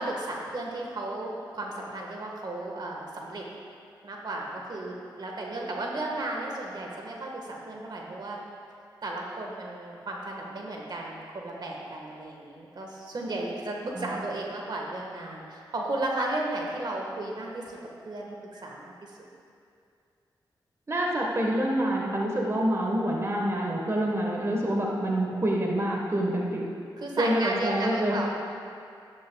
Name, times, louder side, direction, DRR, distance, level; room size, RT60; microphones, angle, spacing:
voice 1, 0.0-3.4 4.0-8.4 9.0-17.8 18.0-19.2 27.0-28.3, right 2 dB, 55° right, -1 dB, 1.4 m, -34 dB
voice 2, 20.9-26.6 27.2-28.1, right 1 dB, 35° right, -2 dB, 1.3 m, -27 dB
12.0 x 10.5 x 2.3 m, 2.4 s
cardioid pair, 60°, 9 cm